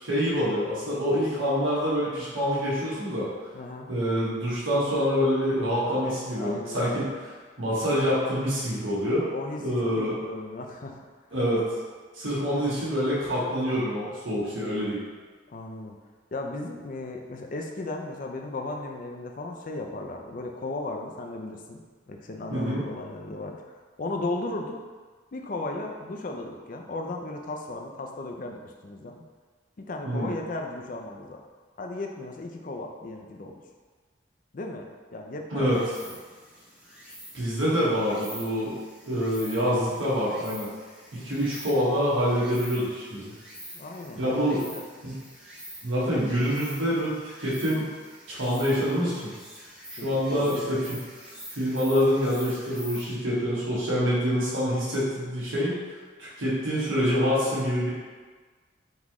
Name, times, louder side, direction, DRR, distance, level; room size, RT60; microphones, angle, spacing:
voice 1, 0.0-3.3 3.9-7.1 7.6-9.2 9.6-10.2 11.3-11.7 12.1-15.0 22.5-22.8 30.0-30.3 35.5-35.8 37.3-38.8 39.1-40.7 41.1-43.3 44.1-44.7 45.0-45.2 45.8-47.9 48.3-49.3 49.9-51.0 51.5-55.8 56.2-57.9, equal, 85° right, -8 dB, 1.4 m, -26 dB
voice 2, 3.5-3.9 5.8-6.0 6.4-7.0 9.3-11.0 12.4-12.6 15.5-16.0 16.3-21.8 22.1-23.6 24.0-24.8 25.3-29.2 29.8-31.4 31.8-33.6 34.5-35.7 36.1-36.2 41.2-41.4 43.7-44.8 50.0-50.9, left 2 dB, 45° left, 2 dB, 0.4 m, -36 dB
Insect, 35.7-53.0, right 1 dB, 5° right, 0.7 m, -46 dB
3.9 x 3.0 x 3.6 m, 1.4 s
head